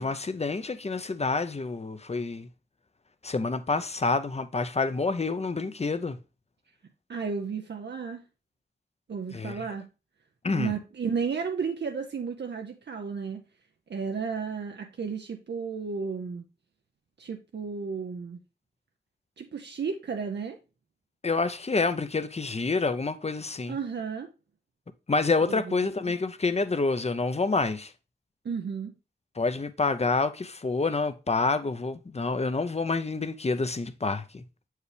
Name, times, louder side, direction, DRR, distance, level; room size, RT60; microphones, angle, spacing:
voice 1, 0.0-2.5 3.2-6.2 9.3-9.6 10.4-10.7 21.2-23.8 25.1-27.9 29.4-34.4, left 3 dB, 40° left, 0.6 m, -28 dB
voice 2, 7.1-8.2 9.1-9.9 10.5-13.4 13.9-16.5 17.2-18.4 19.4-20.6 23.7-24.3 25.5-25.8 26.0-26.1 28.4-28.9, right 5 dB, 85° right, 0.6 m, -33 dB
6.9 x 4.7 x 3.3 m
wide cardioid pair, 55°, 17 cm